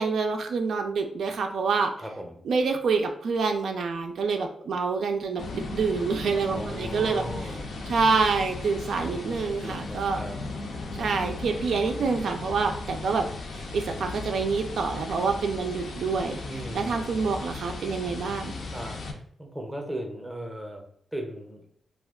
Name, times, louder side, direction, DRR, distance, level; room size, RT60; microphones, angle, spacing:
voice 1, 0.0-1.9 2.4-7.6 7.9-10.2 11.0-18.5, right 4 dB, 75° right, 4 dB, 0.3 m, -27 dB
voice 2, 2.0-2.4 6.5-7.7 9.6-10.4 16.4-17.2 18.7-20.8 21.1-21.6, right 1 dB, 5° right, 2 dB, 0.6 m, -37 dB
sound 1, 5.4-19.1, left 3 dB, 70° left, 0.5 m, -36 dB
2.4 x 2.2 x 3.5 m, 0.65 s
cardioid pair, 110°, 0 cm